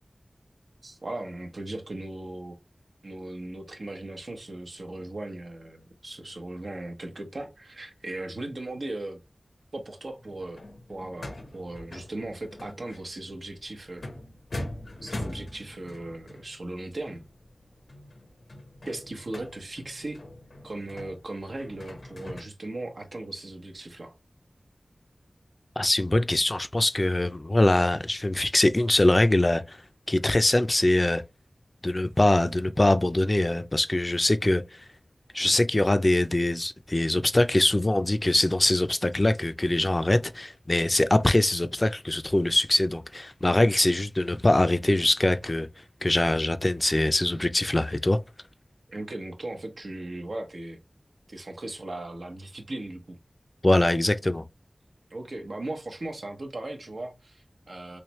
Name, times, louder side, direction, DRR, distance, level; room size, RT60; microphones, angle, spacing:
voice 1, 0.8-2.6 3.0-9.2 9.7-10.6 10.9-14.0 15.0-17.2 18.8-20.2 20.6-24.2 48.9-50.8 51.3-53.2 55.1-58.0, right 2 dB, 80° right, 0.9 m, -37 dB
sound 1, 10.2-22.4, left 1 dB, 90° left, 0.7 m, -42 dB
voice 2, 25.8-29.8 30.1-31.2 31.8-34.6 35.3-45.7 46.0-48.2 53.6-54.4, left 1 dB, 35° left, 0.4 m, -23 dB
3.2 x 3.1 x 3.0 m
wide cardioid pair, 55°, 0 cm